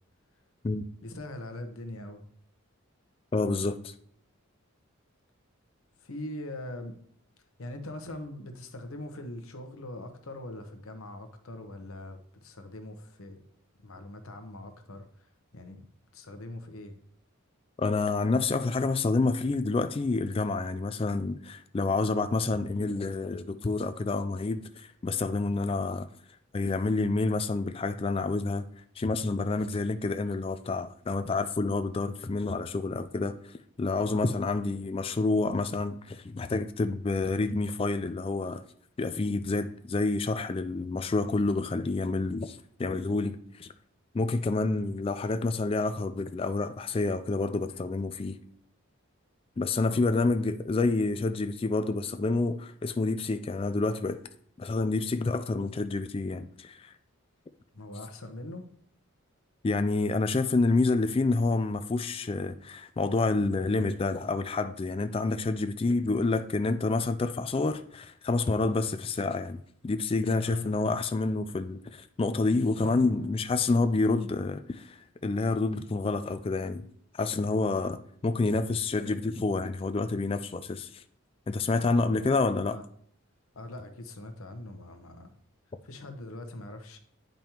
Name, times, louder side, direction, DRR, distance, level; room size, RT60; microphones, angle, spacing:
voice 1, 1.0-2.2 6.0-6.9 7.6-13.4 13.8-15.9 16.1-16.9 34.0-34.3 49.8-50.3 57.7-58.7 70.5-70.8 81.8-82.8 83.5-85.3 85.8-87.0, left 1 dB, 75° left, 1.0 m, -42 dB
voice 2, 3.3-3.9 17.8-26.1 26.5-28.6 29.0-33.4 33.8-38.6 39.0-43.7 44.1-48.4 49.6-54.2 54.6-56.9 59.6-69.6 69.8-75.0 75.2-76.8 77.2-81.0 81.5-82.8, left 3 dB, 25° left, 0.3 m, -28 dB
Drum, 72.8-75.7, right 1 dB, 45° right, 0.8 m, -49 dB
9.1 x 5.2 x 2.9 m
head